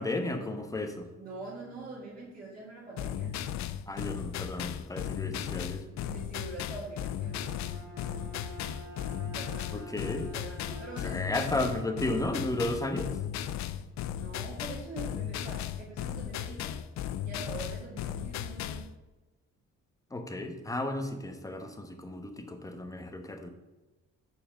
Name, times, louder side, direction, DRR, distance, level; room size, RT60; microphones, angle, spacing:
voice 1, 0.0-1.1 3.9-5.8 9.7-10.3 11.0-13.1 20.1-23.5, left 1 dB, 10° left, 5 dB, 1.0 m, -34 dB
voice 2, 1.2-3.6 6.0-7.5 9.4-9.9 10.3-11.9 14.0-16.8 17.2-18.9, right 3 dB, 25° right, -8 dB, 2.0 m, -44 dB
sound 1, 3.0-18.9, left 10 dB, 65° left, 0.5 m, -36 dB
Bowed string instrument, 7.1-11.4, right 1 dB, 80° right, 1.9 m, -47 dB
5.4 x 4.5 x 6.2 m, 1.2 s
cardioid pair, 90°, 30 cm